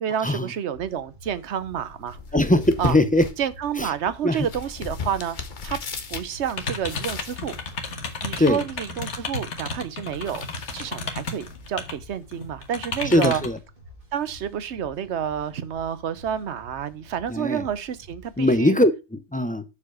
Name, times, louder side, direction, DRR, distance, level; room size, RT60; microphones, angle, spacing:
voice 1, 0.0-2.2 2.8-3.0 3.4-5.8 6.1-7.5 8.2-10.4 10.7-13.4 14.1-18.8, right 9 dB, 75° right, 1.0 m, -29 dB
sound 1, 0.7-18.6, left 1 dB, 50° right, 2.6 m, -49 dB
sound 2, 1.6-12.6, left 5 dB, 45° left, 1.0 m, -39 dB
voice 2, 2.3-3.3 3.8-3.9 4.2-4.5 8.4-8.6 13.1-13.6 17.3-17.6 18.4-19.6, left 1 dB, 10° left, 0.5 m, -20 dB
sound 3, 6.5-11.9 12.3-13.6, left 3 dB, 80° left, 1.7 m, -32 dB
7.2 x 4.8 x 6.1 m
omnidirectional pair, 1.2 m